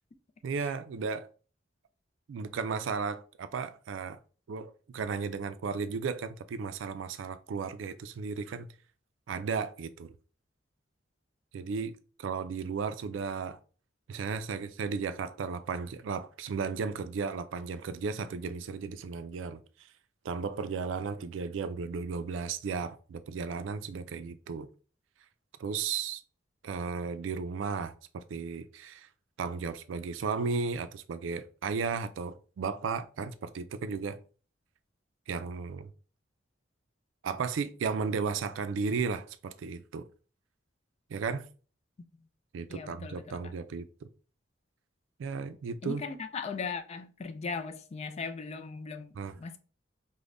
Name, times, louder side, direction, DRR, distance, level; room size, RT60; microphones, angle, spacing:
voice 1, 0.4-1.3 2.3-4.2 4.5-8.7 9.3-10.1 11.5-11.9 12.2-13.6 14.1-19.6 20.2-24.7 25.6-26.2 26.6-29.1 29.4-34.2 35.3-35.9 37.2-40.0 41.1-41.4 42.5-43.9 45.2-46.0 49.2-49.3, right 5 dB, 80° right, 0.3 m, -34 dB
voice 2, 42.7-43.5 45.8-49.6, left 5 dB, 35° left, 0.3 m, -38 dB
5.1 x 2.1 x 2.5 m
head